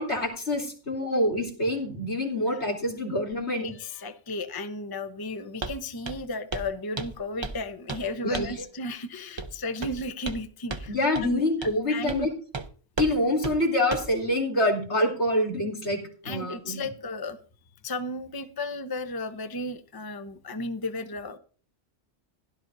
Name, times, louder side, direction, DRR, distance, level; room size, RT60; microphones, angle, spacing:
voice 1, 0.0-3.6 8.2-8.5 10.9-12.3 13.0-16.0 16.2-16.8, left 1 dB, 75° left, -2 dB, 3.4 m, -26 dB
voice 2, 3.5-10.9 11.2-12.3 16.2-17.4 17.8-21.4, left 1 dB, 25° left, 8 dB, 0.7 m, -34 dB
Walk footsteps, 5.6-5.8 6.0-6.3 6.5-6.7 7.0-7.6 7.9-8.1 8.3-8.6 9.4-9.5 9.8-10.4 10.7-10.9 11.1-11.3 11.6-11.8 12.1-12.2 12.5-12.7 13.0-13.1 13.4-13.6 13.9-14.1, right 3 dB, 30° right, 0.7 m, -34 dB
16.5 x 11.5 x 2.6 m, 0.41 s
omnidirectional pair, 1.2 m